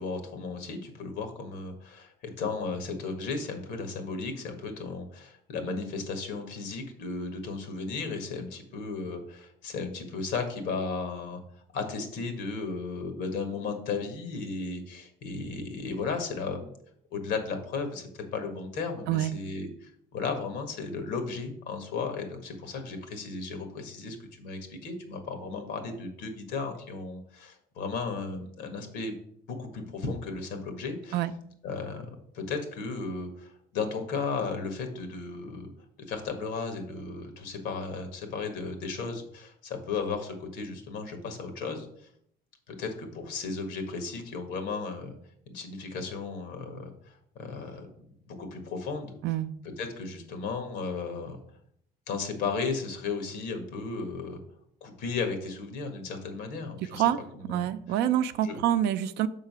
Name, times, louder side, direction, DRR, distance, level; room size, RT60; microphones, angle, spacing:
voice 1, 0.0-11.4 11.7-16.7 17.1-29.2 29.5-31.2 31.6-35.7 36.1-42.1 42.7-45.1 45.5-47.9 48.3-49.1 49.8-51.4 52.1-54.4 54.8-57.0 57.3-57.7 58.4-58.6, left 4 dB, 85° left, 6 dB, 1.6 m, -35 dB
voice 2, 56.9-59.3, right 11 dB, 80° right, 11 dB, 0.5 m, -27 dB
6.5 x 3.8 x 6.1 m, 0.68 s
cardioid pair, 110°, 17 cm